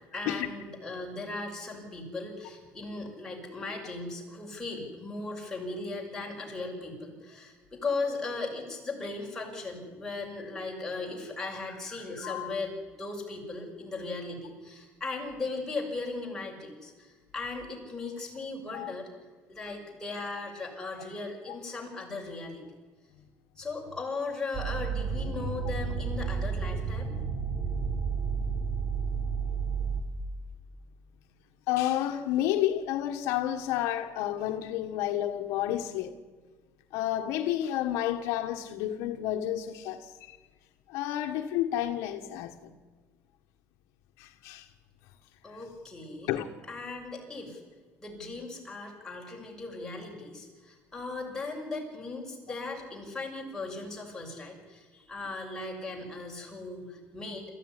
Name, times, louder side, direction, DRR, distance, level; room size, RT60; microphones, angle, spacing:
voice 1, 0.1-19.1 19.5-22.6 23.6-27.2 45.4-46.4 46.7-47.6 48.0-57.5, left 3 dB, 10° left, 6.4 m, -37 dB
voice 2, 12.2-12.6 18.7-18.9 21.5-21.6 31.7-36.2 36.9-40.4 40.9-42.7 44.2-44.7 46.3-46.5, left 12 dB, 80° left, 1.5 m, -30 dB
sound 1, 24.5-30.0, right 5 dB, 25° right, 3.9 m, -31 dB
26.0 x 15.0 x 9.9 m
cardioid pair, 135°, 5 cm